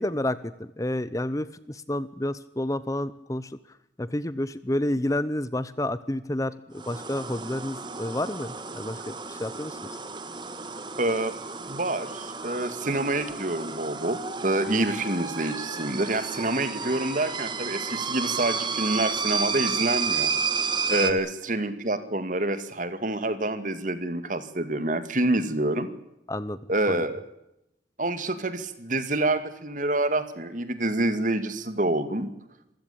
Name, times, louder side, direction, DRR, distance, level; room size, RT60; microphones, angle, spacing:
voice 1, 0.0-3.6 4.0-9.8 21.0-21.2 26.3-26.6 26.9-27.0, left 1 dB, 20° left, 16 dB, 0.8 m, -30 dB
sound 1, 6.7-21.1, right 5 dB, 25° right, 1.7 m, -32 dB
voice 2, 11.0-11.4 11.7-20.3 20.9-25.9 26.7-27.2 28.0-32.3, right 2 dB, 45° right, 11 dB, 2.3 m, -27 dB
26.5 x 16.0 x 8.6 m, 0.85 s
head